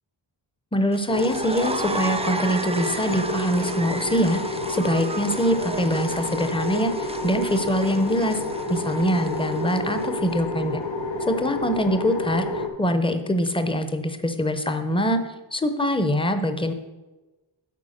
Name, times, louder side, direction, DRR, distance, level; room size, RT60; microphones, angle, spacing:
voice 1, 0.7-8.4 8.7-10.8 11.3-15.2 15.5-16.7, equal, 10° left, 9 dB, 0.7 m, -24 dB
sound 1, 0.9-10.2, right 2 dB, 15° right, 0.4 m, -35 dB
sound 2, 1.1-12.7, left 2 dB, 70° left, 1.0 m, -29 dB
8.3 x 4.7 x 6.5 m, 1.2 s
wide cardioid pair, 60°, 46 cm